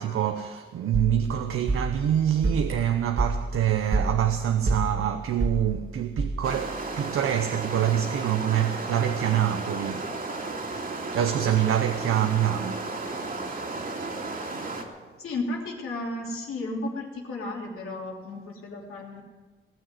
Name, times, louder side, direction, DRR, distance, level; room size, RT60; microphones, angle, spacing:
voice 1, 0.0-10.1 11.1-12.9, right 10 dB, 90° right, 0.8 m, -26 dB
sound 1, 0.9-6.7, right 2 dB, 60° right, 2.6 m, -29 dB
sound 2, 6.4-14.8, right 3 dB, 45° right, 2.5 m, -34 dB
voice 2, 15.2-19.2, left 2 dB, 85° left, 3.1 m, -33 dB
19.0 x 6.5 x 9.8 m
cardioid pair, 100°, 21 cm